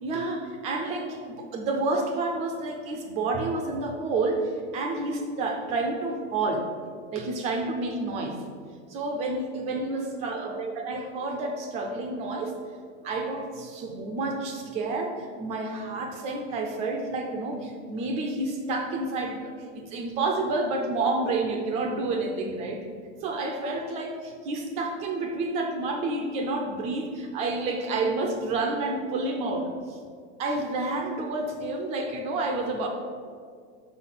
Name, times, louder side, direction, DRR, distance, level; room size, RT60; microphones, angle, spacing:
voice 1, 0.0-6.7 7.1-8.5 8.9-12.6 13.0-22.9 23.2-30.0 30.4-32.9, right 2 dB, 20° right, 3 dB, 0.3 m, -29 dB
5.7 x 5.3 x 5.9 m, 2.1 s
supercardioid pair, 175°, 35 cm